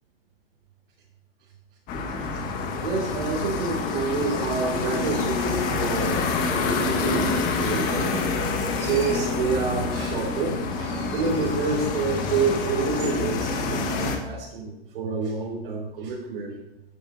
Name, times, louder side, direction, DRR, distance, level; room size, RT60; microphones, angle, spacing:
sound 1, 1.9-14.2, left 4 dB, 25° left, 1.6 m, -27 dB
voice 1, 2.8-8.3 8.7-16.5, right 4 dB, 60° right, -7 dB, 4.8 m, -28 dB
12.5 x 12.0 x 2.8 m, 0.89 s
hypercardioid pair, 150°, 31 cm